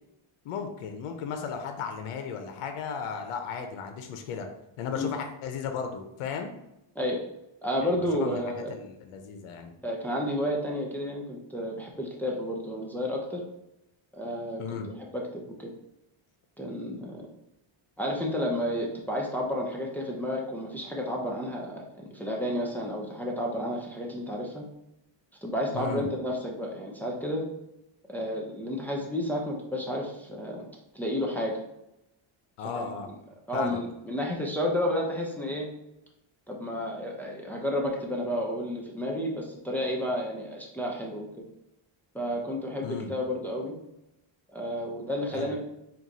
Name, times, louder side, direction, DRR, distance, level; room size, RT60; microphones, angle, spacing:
voice 1, 0.4-4.5 4.8-6.5 8.2-8.4 8.7-9.7 14.6-14.9 25.7-26.1 32.6-33.1 33.5-33.8 42.8-43.1 45.3-45.5, left 6 dB, 85° left, 5 dB, 0.7 m, -35 dB
voice 2, 7.6-8.8 9.8-13.4 14.1-15.7 16.6-17.2 18.0-24.6 25.4-27.4 28.1-30.6 30.9-31.6 32.8-32.9 33.5-35.7 36.5-41.3 42.1-43.7 44.5-45.6, equal, 5° left, -2 dB, 0.7 m, -31 dB
4.5 x 2.4 x 3.9 m, 0.86 s
cardioid pair, 100°, 50 cm